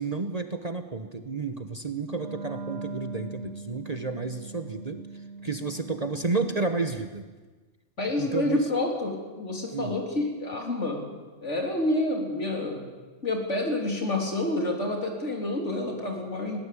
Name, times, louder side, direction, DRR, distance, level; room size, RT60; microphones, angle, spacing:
voice 1, 0.0-5.0 5.4-7.3 8.2-8.6 9.7-10.0, right 3 dB, 30° right, 8 dB, 1.1 m, -31 dB
Wind instrument woodwind instrument, 2.0-7.1, right 3 dB, 65° right, 2.6 m, -41 dB
voice 2, 8.0-11.0 11.4-12.8 13.2-16.6, left 2 dB, 65° left, 2 dB, 4.0 m, -28 dB
21.0 x 17.5 x 8.6 m, 1.3 s
omnidirectional pair, 1.3 m